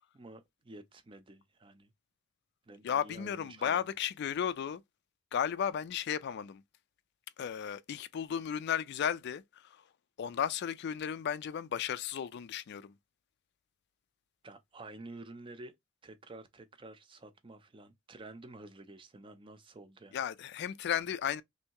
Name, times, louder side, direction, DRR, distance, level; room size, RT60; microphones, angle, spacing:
voice 1, 0.1-1.9 2.7-3.8 14.4-15.7 16.0-20.2, right 2 dB, 25° right, 0.5 m, -50 dB
voice 2, 2.8-4.8 5.3-6.6 7.4-9.7 10.2-12.9 20.1-21.4, left 8 dB, 55° left, 0.3 m, -34 dB
3.2 x 2.7 x 2.9 m
head